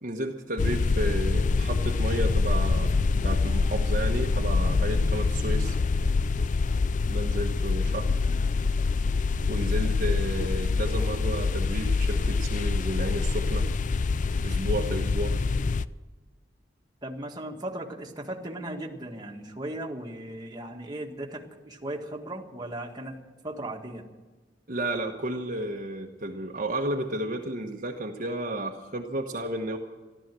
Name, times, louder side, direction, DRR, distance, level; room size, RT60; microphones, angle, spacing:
voice 1, 0.0-5.8 7.1-8.1 9.5-13.7 14.4-15.4 24.7-29.8, right 1 dB, 45° right, 1 dB, 1.2 m, -32 dB
sound 1, 0.6-15.9, left 4 dB, 45° left, 0.4 m, -25 dB
voice 2, 17.0-23.2 23.4-24.1, right 1 dB, 25° right, 0 dB, 1.8 m, -37 dB
14.5 x 13.0 x 7.6 m, 1.3 s
head